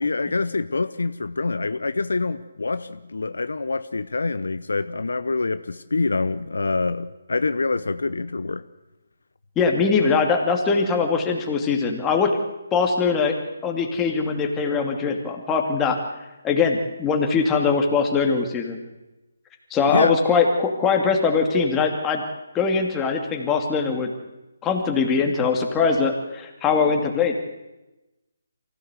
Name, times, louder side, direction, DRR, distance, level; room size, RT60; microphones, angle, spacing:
voice 1, 0.0-8.6 19.9-20.2, left 3 dB, 75° left, 13 dB, 0.8 m, -25 dB
voice 2, 9.6-12.3 12.7-13.4 13.6-16.0 16.4-18.8 19.7-22.2 22.5-24.1 24.6-27.4, left 5 dB, 15° left, 2 dB, 2.6 m, -21 dB
24.0 x 16.0 x 8.2 m, 1.0 s
figure-of-eight pair, 150°, 0 cm